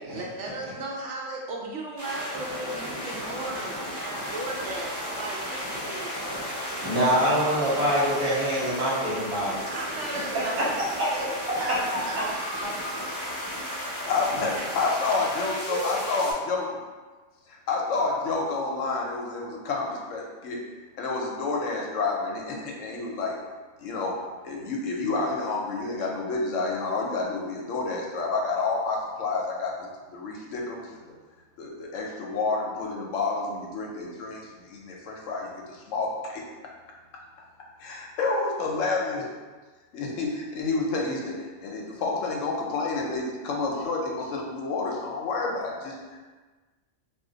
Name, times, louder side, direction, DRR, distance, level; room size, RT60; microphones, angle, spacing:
voice 1, 0.0-6.5 9.7-10.8 11.1-11.3 11.6-11.8 12.0-13.2 15.7-15.9, right 2 dB, 65° right, -1 dB, 0.9 m, -36 dB
sound 1, 2.0-16.3, equal, 15° right, 1.2 m, -34 dB
voice 2, 6.8-9.5 10.3-10.4 11.0-11.1, right 1 dB, 35° right, -11 dB, 0.9 m, -24 dB
voice 3, 13.8-16.7 17.5-20.6 21.0-23.4 23.8-24.1 24.4-31.0 31.6-36.4 37.8-39.3 39.9-46.2, left 3 dB, 70° left, -1 dB, 0.9 m, -29 dB
2.4 x 2.4 x 3.8 m, 1.3 s
omnidirectional pair, 1.4 m